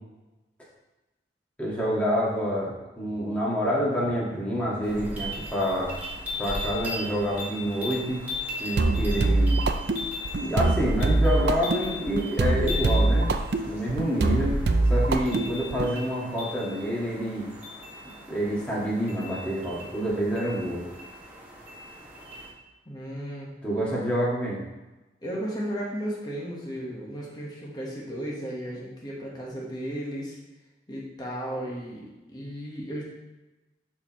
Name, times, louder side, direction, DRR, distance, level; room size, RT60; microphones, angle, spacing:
voice 1, 1.6-6.0 6.4-8.2 8.6-9.6 10.4-13.3 13.6-17.5 18.3-20.8 23.6-24.6, equal, 5° left, -6 dB, 1.7 m, -27 dB
sound 1, 4.8-22.5, left 2 dB, 10° right, 1.8 m, -38 dB
sound 2, 8.8-15.9, right 2 dB, 65° right, 0.5 m, -24 dB
voice 2, 22.8-23.5 25.2-30.4 30.9-33.0, equal, 25° left, -4 dB, 1.3 m, -34 dB
11.5 x 4.4 x 3.1 m, 1.1 s
head